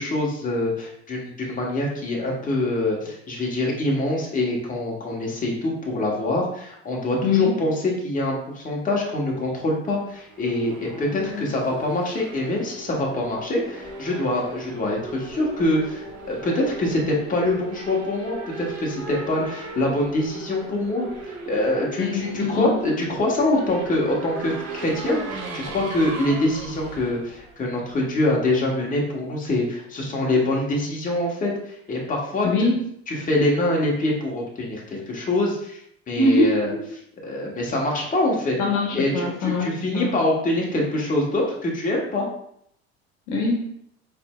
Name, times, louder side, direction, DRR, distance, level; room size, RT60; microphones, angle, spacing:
voice 1, 0.0-21.1 21.5-32.5 33.1-35.8 36.1-36.7 37.2-38.6 38.9-42.3, left 1 dB, 25° left, -2 dB, 1.2 m, -24 dB
voice 2, 7.2-7.5 11.1-11.5 22.0-22.7 32.4-32.8 36.1-36.8 38.6-40.1 43.3-43.6, left 2 dB, 60° left, -1 dB, 1.1 m, -23 dB
Race car auto racing / Accelerating revving vroom, 10.0-28.2, right 3 dB, 45° right, 0.8 m, -37 dB
4.4 x 3.3 x 2.3 m, 0.69 s
hypercardioid pair, 70°, 33 cm